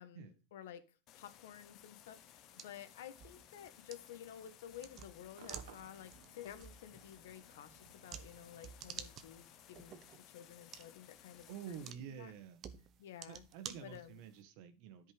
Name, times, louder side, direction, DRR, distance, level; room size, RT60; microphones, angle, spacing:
voice 1, 0.0-12.3 13.0-13.4 13.8-14.2, left 10 dB, 85° left, 11 dB, 1.3 m, -53 dB
sound 1, 1.1-11.9, left 11 dB, 45° left, 1.0 m, -60 dB
sound 2, 2.1-14.4, right 8 dB, 35° right, 1.0 m, -54 dB
Cheering / Crowd / Fireworks, 5.4-10.7, right 10 dB, 85° right, 1.3 m, -62 dB
voice 2, 11.5-12.6 13.3-15.1, right 8 dB, 60° right, 10 dB, 1.5 m, -49 dB
10.0 x 5.5 x 5.1 m, 0.31 s
supercardioid pair, 130°, 0 cm